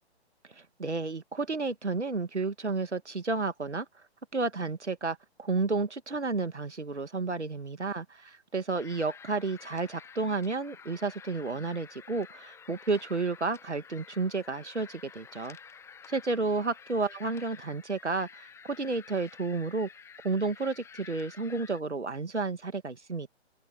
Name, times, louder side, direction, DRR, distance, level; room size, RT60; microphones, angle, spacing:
voice 1, 0.6-3.9 4.3-15.6 16.1-19.9 20.2-23.3, right 3 dB, 85° right, 2.1 m, -31 dB
sound 1, 8.8-21.8, left 6 dB, 10° left, 1.7 m, -51 dB
open air
figure-of-eight pair, 130°, 34 cm